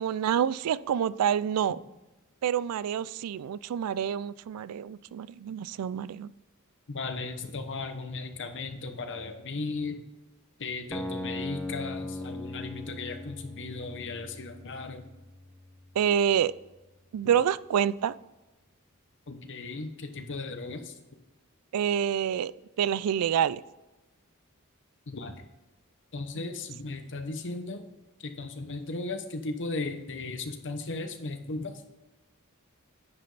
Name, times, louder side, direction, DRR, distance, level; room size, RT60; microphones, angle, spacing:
voice 1, 0.0-1.8 2.4-6.3 16.0-16.5 17.1-18.1 21.7-22.5 22.8-23.6, right 9 dB, 90° right, 18 dB, 0.3 m, -27 dB
voice 2, 6.9-10.0 10.6-15.1 19.3-20.9 25.1-25.3 26.1-27.9 28.2-31.7, left 3 dB, 60° left, 7 dB, 1.0 m, -36 dB
sound 1, 10.9-16.9, left 2 dB, 5° left, 0.5 m, -40 dB
9.8 x 5.2 x 4.0 m, 1.1 s
head